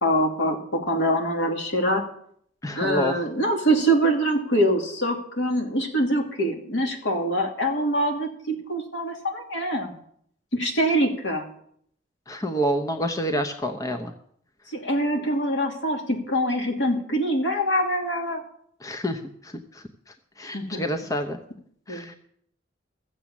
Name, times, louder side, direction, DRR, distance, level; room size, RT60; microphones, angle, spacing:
voice 1, 0.0-2.0 2.8-9.9 10.5-11.5 14.7-18.4 20.5-20.8 21.9-22.2, right 1 dB, 70° left, 2 dB, 2.6 m, -24 dB
voice 2, 2.6-3.1 12.3-14.1 18.8-19.8 20.4-21.4 21.9-22.2, equal, 20° left, 6 dB, 0.8 m, -28 dB
14.5 x 7.6 x 7.2 m, 0.66 s
head